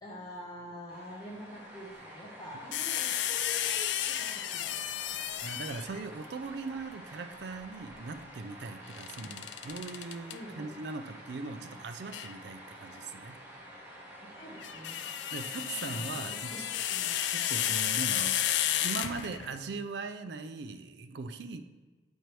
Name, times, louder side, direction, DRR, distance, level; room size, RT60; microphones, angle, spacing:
voice 1, 0.0-5.3 9.2-9.3 10.3-10.7 14.3-15.0 15.9-16.6 16.9-17.2, equal, 20° left, -6 dB, 1.0 m, -46 dB
sound 1, 0.9-19.2, equal, 10° right, 0.9 m, -49 dB
sound 2, 2.7-6.0 8.9-10.3 12.1-12.3 14.4-19.6, left 11 dB, 90° left, 0.3 m, -32 dB
voice 2, 5.4-13.4 15.3-16.5 17.3-21.6, right 4 dB, 75° right, 9 dB, 0.4 m, -40 dB
8.0 x 4.5 x 3.1 m, 1.3 s
head